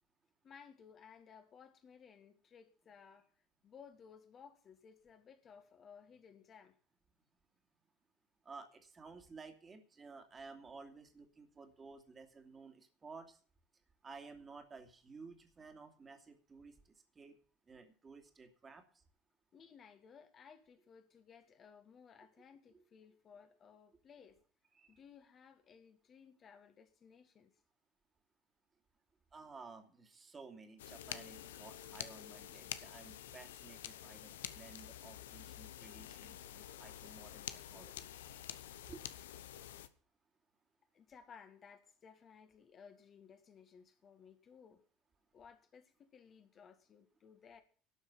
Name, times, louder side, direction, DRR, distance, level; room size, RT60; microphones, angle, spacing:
voice 1, 0.4-3.3 3.6-6.8 19.5-24.4 24.9-27.5 40.9-44.8 45.3-47.6, left 6 dB, 40° left, 2.0 m, -59 dB
voice 2, 8.4-13.4 14.0-17.4 17.7-19.0 22.7-22.8 24.7-25.0 29.3-38.1 38.9-39.2, right 4 dB, 30° right, 2.7 m, -54 dB
sound 1, 30.8-39.9, left 11 dB, 75° left, 0.8 m, -48 dB
12.0 x 6.5 x 9.7 m
figure-of-eight pair, 65°, 0 cm